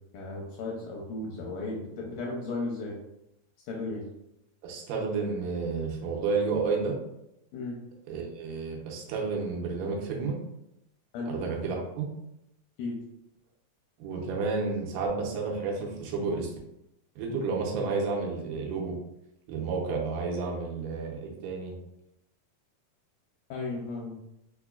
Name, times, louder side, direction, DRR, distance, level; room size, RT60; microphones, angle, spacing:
voice 1, 0.1-2.9 3.7-4.0 7.5-7.8 11.1-11.3 12.8-13.0 23.5-24.2, left 3 dB, 80° left, -2 dB, 1.9 m, -35 dB
voice 2, 4.6-7.0 8.1-10.4 11.3-12.1 14.0-16.5 17.2-19.0 19.5-21.7, right 4 dB, 75° right, -2 dB, 2.2 m, -31 dB
5.6 x 2.2 x 2.3 m, 0.84 s
omnidirectional pair, 4.1 m